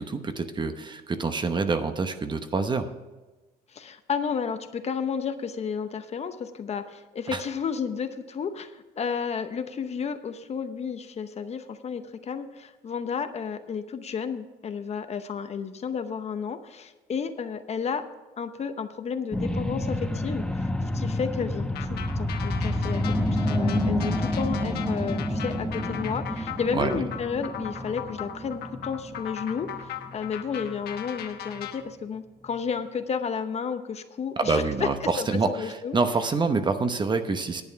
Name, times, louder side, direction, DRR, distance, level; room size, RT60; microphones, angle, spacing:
voice 1, 0.0-2.9 7.3-7.4 26.7-27.0 34.4-37.6, right 4 dB, 25° right, 8 dB, 0.9 m, -26 dB
voice 2, 3.7-18.0 18.4-34.9 35.2-36.0, left 6 dB, 40° left, 9 dB, 0.8 m, -32 dB
sound 1, 19.3-32.0 32.5-32.6, left 1 dB, 5° left, 0.9 m, -29 dB
sound 2, 21.7-31.8, left 9 dB, 70° left, 1.0 m, -39 dB
10.5 x 8.9 x 5.7 m, 1.2 s
cardioid pair, 110°, 17 cm